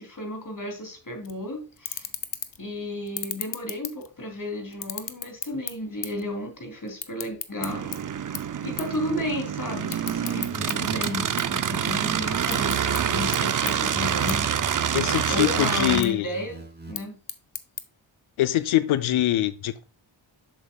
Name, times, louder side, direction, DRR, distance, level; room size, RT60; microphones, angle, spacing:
voice 1, 0.0-2.1 2.6-8.0 8.6-14.5 15.3-17.2, left 1 dB, 40° left, 3.0 m, -33 dB
sound 1, 1.2-1.4 1.8-2.7 3.1-4.3 4.7-6.3 6.5-8.0 8.4-8.5 8.8-9.0 9.3-10.7 11.0-12.0 12.4-13.0 13.3-13.4 13.7-13.8 14.3-14.4 14.8-15.3 15.8-16.1 16.7-17.8, left 8 dB, 60° left, 0.9 m, -34 dB
sound 2, 7.6-16.0, right 8 dB, 40° right, 0.6 m, -26 dB
sound 3, 10.5-13.5 13.9-16.9, right 1 dB, 20° right, 2.8 m, -41 dB
voice 2, 14.9-16.3 18.4-19.8, left 13 dB, 85° left, 0.6 m, -23 dB
7.4 x 7.1 x 2.3 m
cardioid pair, 65°, 48 cm